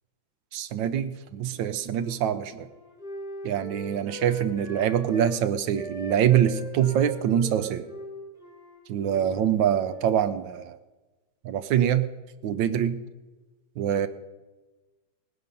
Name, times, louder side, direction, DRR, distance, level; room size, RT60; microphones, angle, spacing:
voice 1, 0.5-2.7 3.4-7.9 8.9-10.8 11.4-12.1 12.4-13.0 13.8-14.1, right 9 dB, 70° right, 12 dB, 1.3 m, -25 dB
Wind instrument woodwind instrument, 1.4-5.4 5.7-10.2, right 1 dB, ahead, 3.1 m, -42 dB
18.5 x 10.0 x 5.3 m, 1.2 s
omnidirectional pair, 2.2 m